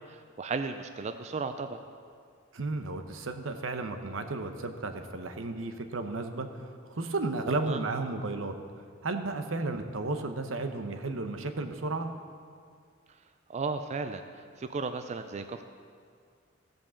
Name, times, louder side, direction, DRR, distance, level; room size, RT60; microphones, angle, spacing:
voice 1, 0.0-1.8 7.5-7.8 13.5-15.6, right 4 dB, 35° right, 8 dB, 0.4 m, -35 dB
voice 2, 2.5-6.5 6.9-8.5 9.0-12.1, right 3 dB, 80° right, 7 dB, 0.8 m, -33 dB
15.0 x 5.2 x 7.0 m, 2.2 s
head